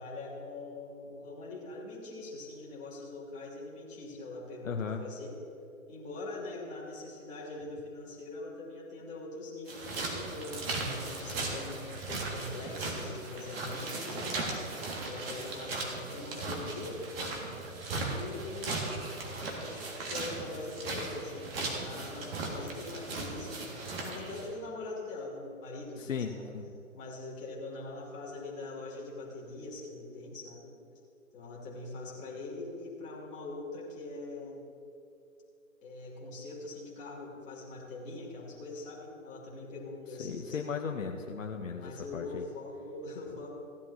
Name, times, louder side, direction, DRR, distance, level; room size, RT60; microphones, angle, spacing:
voice 1, 0.0-5.4 5.9-14.6 15.1-17.0 18.1-18.8 19.5-26.4 26.9-30.7 31.3-34.6 35.8-40.6 41.8-43.5, left 2 dB, 15° left, -5 dB, 2.4 m, -42 dB
voice 2, 4.6-5.0 26.0-26.7 40.2-42.4, left 6 dB, 65° left, 3 dB, 0.9 m, -36 dB
sound 1, 9.7-24.5, right 3 dB, 45° right, 2.1 m, -37 dB
16.0 x 11.0 x 2.8 m, 2.5 s
figure-of-eight pair, 135°, 42 cm